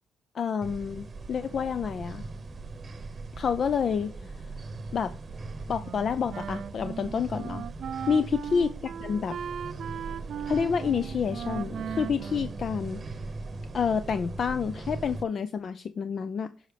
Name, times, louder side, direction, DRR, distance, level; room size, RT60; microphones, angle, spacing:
voice 1, 0.3-2.2 3.4-4.3 4.9-5.1 5.7-7.6 8.1-8.7 9.0-9.4 10.5-13.0 13.7-16.5, left 6 dB, 50° left, 0.4 m, -28 dB
sound 1, 0.6-15.2, right 3 dB, 35° right, 0.9 m, -39 dB
Wind instrument woodwind instrument, 5.8-13.3, right 8 dB, 60° right, 0.4 m, -38 dB
15.5 x 5.6 x 3.4 m
cardioid pair, 90°, 0 cm